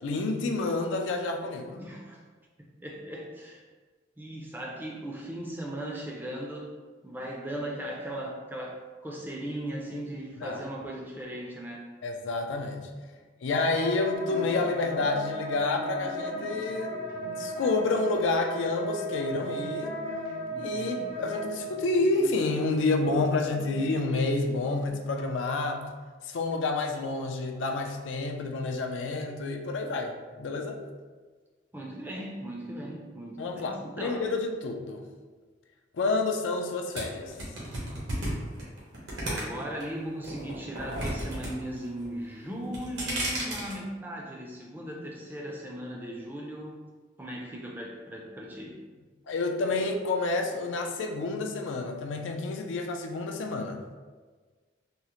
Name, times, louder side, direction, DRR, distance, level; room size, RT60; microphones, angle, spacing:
voice 1, 0.0-1.8 10.4-10.6 12.0-12.9 13.4-16.9 17.2-19.9 20.6-25.9 26.2-30.8 33.4-35.0 36.0-37.3 49.3-53.8, left 3 dB, 85° left, 3 dB, 0.4 m, -29 dB
voice 2, 1.7-2.2 2.6-3.6 4.2-6.7 7.0-11.9 31.7-34.3 39.2-46.8 47.2-48.8, right 1 dB, 10° right, -2 dB, 0.3 m, -38 dB
Wind instrument woodwind instrument, 13.5-21.7, equal, 60° left, 0.8 m, -35 dB
sound 1, 14.1-24.9, equal, 55° right, 0.7 m, -45 dB
sound 2, 37.0-39.8 40.2-41.5 41.8-42.2 42.6-43.7, right 1 dB, 80° right, 1.0 m, -33 dB
3.6 x 2.0 x 2.8 m, 1.4 s
head